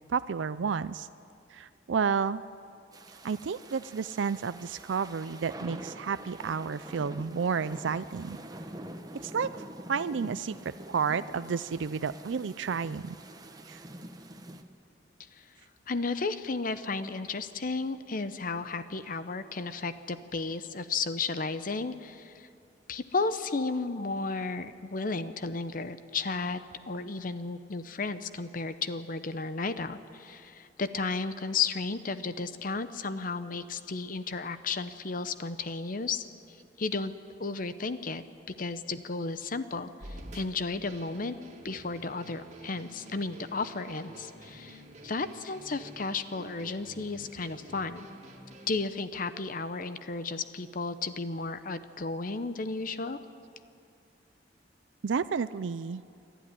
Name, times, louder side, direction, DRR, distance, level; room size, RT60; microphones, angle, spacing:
voice 1, 0.1-1.1 1.5-2.4 3.2-8.4 9.2-9.5 9.9-13.2 13.7-13.8 55.0-56.0, right 6 dB, 90° right, 14 dB, 0.5 m, -31 dB
sound 1, 2.9-14.6, right 1 dB, 20° right, 1.1 m, -46 dB
voice 2, 15.9-22.5 22.9-26.6 26.9-36.2 36.8-37.1 37.4-41.4 41.6-48.1 48.7-53.2, left 4 dB, 50° left, 12 dB, 0.8 m, -33 dB
sound 2, 40.0-48.7, right 1 dB, 40° right, 2.4 m, -48 dB
27.5 x 12.5 x 9.9 m, 2.5 s
head